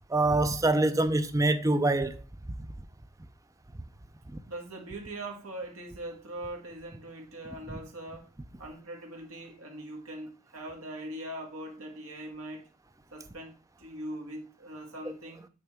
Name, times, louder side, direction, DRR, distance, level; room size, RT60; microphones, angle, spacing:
voice 1, 0.1-2.2, right 2 dB, 15° right, 0.5 m, -25 dB
voice 2, 4.5-8.3 8.6-12.7 13.1-15.5, right 1 dB, 80° right, 1.8 m, -41 dB
8.6 x 3.4 x 3.6 m
head